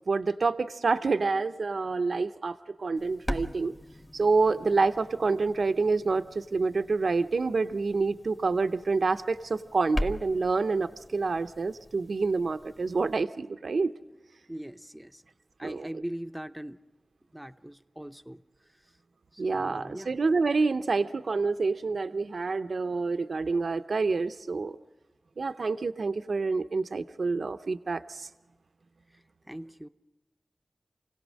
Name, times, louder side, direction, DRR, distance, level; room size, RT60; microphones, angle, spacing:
voice 1, 0.1-3.7 4.1-13.9 15.6-15.9 19.4-24.8 25.4-28.3, right 4 dB, 80° right, 9 dB, 0.6 m, -27 dB
sound 1, 3.0-13.2, left 1 dB, 30° left, 1.4 m, -41 dB
voice 2, 14.5-15.2 15.6-16.8 17.3-18.9 19.3-20.1 29.1-29.9, right 1 dB, 5° right, 8 dB, 0.6 m, -41 dB
28.0 x 17.0 x 6.3 m, 1.2 s
wide cardioid pair, 90°, 0 cm